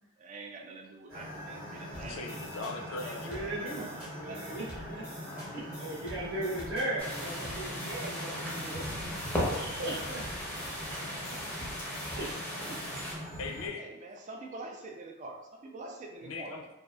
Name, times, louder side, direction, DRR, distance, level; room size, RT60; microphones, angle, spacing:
voice 1, 0.2-2.2 2.9-5.0 5.3-5.5 12.5-13.0 13.8-16.6, right 2 dB, 35° right, 2 dB, 0.3 m, -46 dB
sound 1, 1.1-13.7, equal, 90° right, 1.0 m, -42 dB
sound 2, 1.9-13.0, equal, 10° right, 0.9 m, -48 dB
voice 2, 2.0-3.4 13.4-13.8 16.2-16.6, left 3 dB, 80° left, 2 dB, 0.4 m, -39 dB
voice 3, 3.2-3.9 4.1-5.0 5.5-8.9 9.2-10.3 10.6-10.7 11.7-12.3 13.1-13.2, right 1 dB, 65° right, -5 dB, 0.9 m, -38 dB
sound 3, 7.0-13.2, left 1 dB, 10° left, 0.6 m, -37 dB
2.6 x 2.3 x 2.2 m, 1.0 s
head